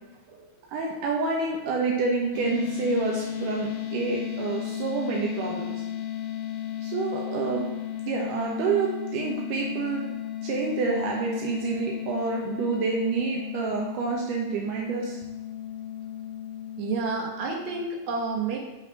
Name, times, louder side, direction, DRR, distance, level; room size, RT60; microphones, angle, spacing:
voice 1, 0.3-5.8 6.8-7.7 8.1-10.1 10.4-15.2, right 4 dB, 80° right, -1 dB, 2.5 m, -28 dB
sound 1, 2.3-17.9, left 11 dB, 70° left, 2.3 m, -35 dB
voice 2, 16.8-18.6, right 3 dB, 65° right, -1 dB, 2.7 m, -30 dB
6.3 x 6.2 x 6.3 m, 1.1 s
omnidirectional pair, 3.7 m